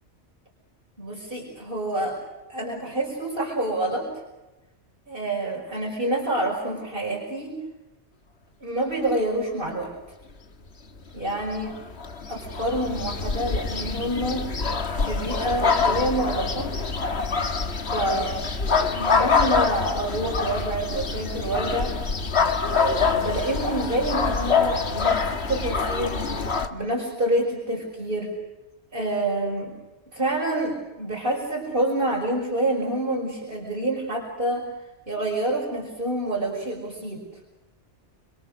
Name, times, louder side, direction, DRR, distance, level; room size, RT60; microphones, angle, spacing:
voice 1, 1.0-2.2 2.5-4.1 5.1-7.6 8.6-9.9 11.1-11.8 12.3-14.5 15.0-16.7 17.9-18.4 18.9-22.0 22.7-28.3 28.9-29.7 30.1-34.7 35.1-37.2, right 1 dB, 50° right, -2 dB, 6.0 m, -27 dB
sound 1, 11.3-26.7, left 4 dB, 65° left, 2.0 m, -25 dB
29.5 x 27.0 x 6.6 m, 1.1 s
omnidirectional pair, 1.2 m